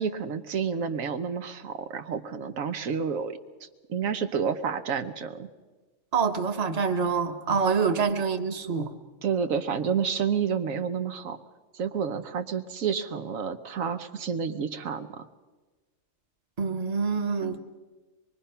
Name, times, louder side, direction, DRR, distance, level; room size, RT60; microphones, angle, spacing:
voice 1, 0.0-3.4 3.9-5.5 9.2-11.4 11.7-15.3, right 6 dB, 90° right, 8 dB, 1.4 m, -29 dB
voice 2, 6.1-8.9 16.6-17.6, right 5 dB, 35° right, 6 dB, 1.1 m, -26 dB
24.0 x 22.0 x 5.7 m, 1.3 s
omnidirectional pair, 1.4 m